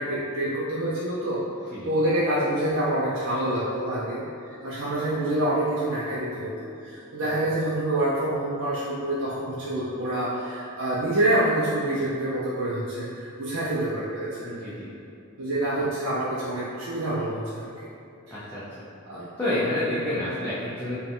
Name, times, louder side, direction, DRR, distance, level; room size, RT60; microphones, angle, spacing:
voice 1, 0.0-1.4 1.8-14.6 15.4-17.9 18.3-18.4 19.1-19.3, right 1 dB, 75° right, -7 dB, 0.5 m, -27 dB
voice 2, 14.4-14.9 18.3-18.6 19.4-21.0, left 1 dB, 10° left, -11 dB, 0.5 m, -29 dB
4.0 x 2.2 x 3.6 m, 2.6 s
head